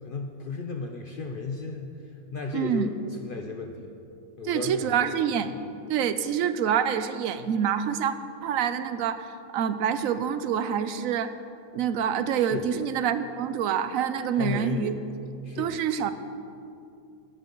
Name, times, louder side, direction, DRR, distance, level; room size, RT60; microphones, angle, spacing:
voice 1, 0.0-2.0 2.3-4.0 4.4-5.1 12.4-12.7 14.3-15.0 15.4-15.8, left 4 dB, 55° left, 3 dB, 0.6 m, -34 dB
voice 2, 2.5-2.9 4.5-5.5 5.9-8.2 8.4-11.3 11.7-14.9 15.6-16.1, right 8 dB, 70° right, 11 dB, 0.9 m, -26 dB
17.0 x 11.0 x 3.0 m, 2.5 s
omnidirectional pair, 1.5 m